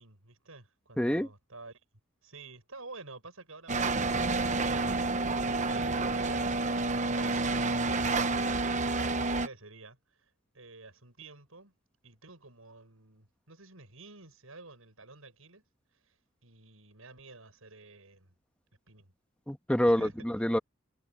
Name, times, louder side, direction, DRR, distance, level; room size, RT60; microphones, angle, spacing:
voice 1, 0.0-1.8 2.2-5.0 5.5-6.6 7.0-8.5 9.1-11.7 12.0-15.6 15.9-16.1 16.4-18.3 18.9-19.1 19.8-20.1, right 3 dB, 90° right, 7.2 m, -50 dB
voice 2, 1.0-1.3 19.5-20.6, equal, 5° left, 1.5 m, -27 dB
sound 1, 3.7-9.5, right 3 dB, 35° right, 1.0 m, -29 dB
head